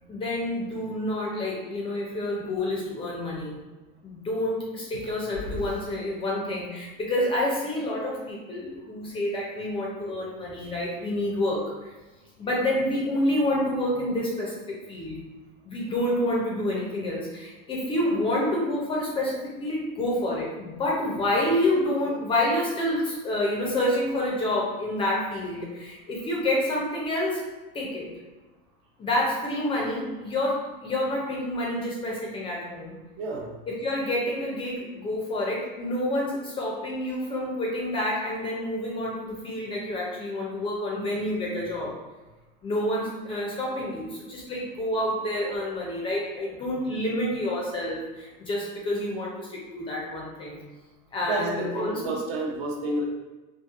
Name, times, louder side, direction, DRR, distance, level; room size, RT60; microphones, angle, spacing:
voice 1, 0.1-3.5 4.0-11.9 12.4-15.2 15.6-27.4 27.7-28.1 29.0-32.9 33.7-42.0 42.6-50.6 51.1-52.1, left 1 dB, 20° left, -3 dB, 0.4 m, -28 dB
voice 2, 33.2-33.5 51.3-53.0, right 2 dB, 65° right, -1 dB, 0.8 m, -30 dB
3.0 x 2.5 x 2.3 m, 1.2 s
supercardioid pair, 140°, 30 cm